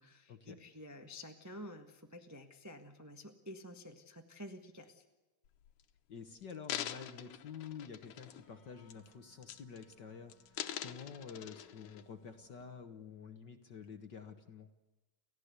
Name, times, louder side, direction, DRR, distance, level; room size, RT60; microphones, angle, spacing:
voice 1, 0.0-5.0, equal, 25° right, 4 dB, 0.3 m, -50 dB
sound 1, 5.5-5.8 6.4-8.5 8.9-9.1 9.4-10.0 10.3-12.0 12.6-12.7, left 11 dB, 90° left, 2.5 m, -44 dB
voice 2, 6.1-14.7, left 6 dB, 50° left, 7 dB, 1.4 m, -49 dB
Wind instrument woodwind instrument, 8.2-13.0, left 1 dB, 30° left, 3.9 m, -71 dB
29.5 x 15.5 x 8.2 m, 1.1 s
omnidirectional pair, 3.4 m